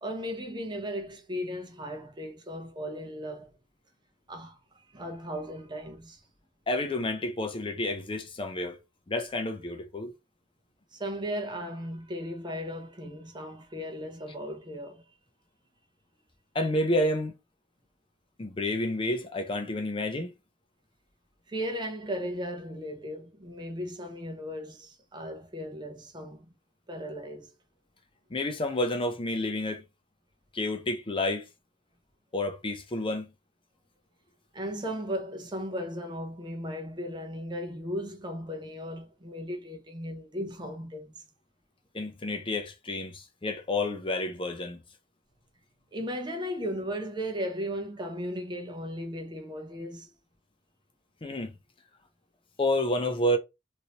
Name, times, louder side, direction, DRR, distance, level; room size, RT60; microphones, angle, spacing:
voice 1, 0.0-3.5 4.3-6.2 10.9-15.0 21.5-26.5 26.9-27.5 34.5-41.2 45.9-50.1, equal, 25° right, 0.7 m, -36 dB
voice 2, 6.7-8.8 9.1-10.1 16.5-17.3 18.4-20.3 28.3-29.8 30.5-31.5 32.3-33.3 41.9-44.8 51.2-51.5 52.6-53.4, left 1 dB, 30° left, 0.5 m, -29 dB
3.1 x 2.7 x 2.8 m
head